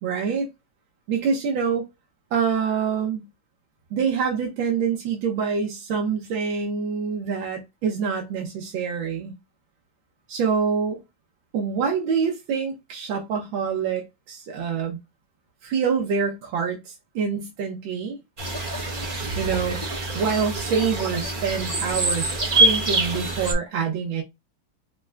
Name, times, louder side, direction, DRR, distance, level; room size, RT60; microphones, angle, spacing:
voice 1, 0.0-0.5 1.1-1.8 2.3-3.3 3.9-9.3 10.3-11.0 11.5-15.0 15.6-18.2 19.4-19.8 20.1-24.2, right 6 dB, 85° right, 1.7 m, -26 dB
sound 1, 18.4-23.5, right 2 dB, 40° right, 0.7 m, -25 dB
5.8 x 2.2 x 2.3 m
omnidirectional pair, 2.1 m